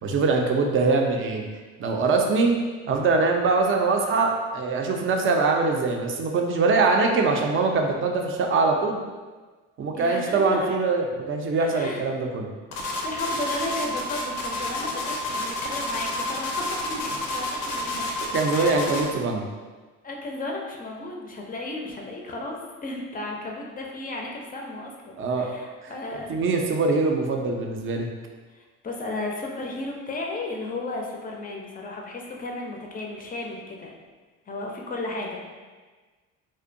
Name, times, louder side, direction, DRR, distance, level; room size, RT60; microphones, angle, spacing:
voice 1, 0.0-1.4 1.8-2.5 2.9-9.0 9.8-12.5 18.3-19.4 25.2-25.5 25.8-25.9 26.3-28.1, right 3 dB, 35° right, 2 dB, 0.4 m, -23 dB
voice 2, 9.9-10.7 11.6-12.0 13.0-18.1 18.5-18.9 20.0-26.6 28.5-33.9 34.5-35.4, left 2 dB, 25° left, 0 dB, 0.4 m, -34 dB
sound 1, 12.7-19.1, left 2 dB, 90° left, 0.5 m, -30 dB
2.6 x 2.1 x 2.5 m, 1.4 s
supercardioid pair, 80°, 34 cm